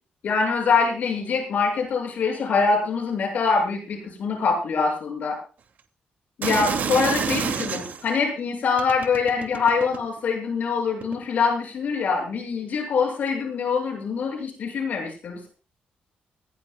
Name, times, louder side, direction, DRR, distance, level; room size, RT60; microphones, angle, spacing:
voice 1, 0.2-5.4 6.4-15.5, left 5 dB, 55° left, 0 dB, 7.6 m, -24 dB
sound 1, 6.4-8.1 8.8-10.2 11.0-11.1, right 7 dB, 65° right, 2.7 m, -28 dB
21.5 x 19.0 x 2.4 m, 0.36 s
wide cardioid pair, 165°, 3 cm